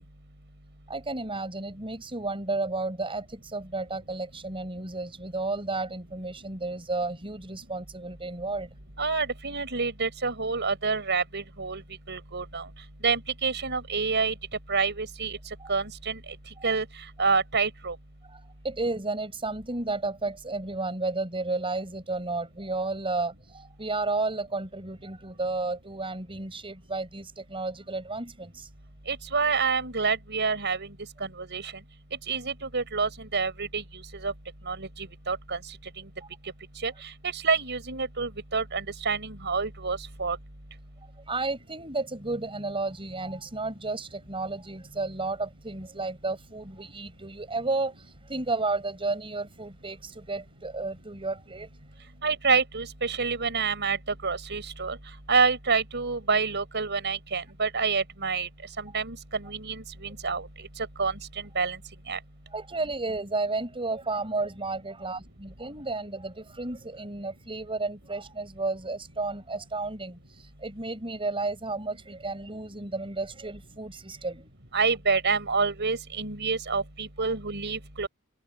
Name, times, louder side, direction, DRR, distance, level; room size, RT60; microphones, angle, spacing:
voice 1, 0.9-8.7 15.6-15.7 16.6-16.7 18.3-28.7 41.3-51.7 62.5-74.5 77.2-77.3, right 3 dB, 25° right, 5.4 m, -32 dB
voice 2, 9.0-11.8 12.1-12.6 13.0-14.3 14.7-15.4 15.7-16.2 16.6-16.8 17.2-17.9 29.1-30.9 31.2-31.7 32.3-34.3 34.7-35.6 36.8-36.9 37.3-40.4 52.2-54.0 54.2-55.0 55.3-58.5 58.8-60.5 61.0-61.1 61.5-61.8 62.1-62.2 74.7-78.1, right 4 dB, 50° right, 6.5 m, -27 dB
head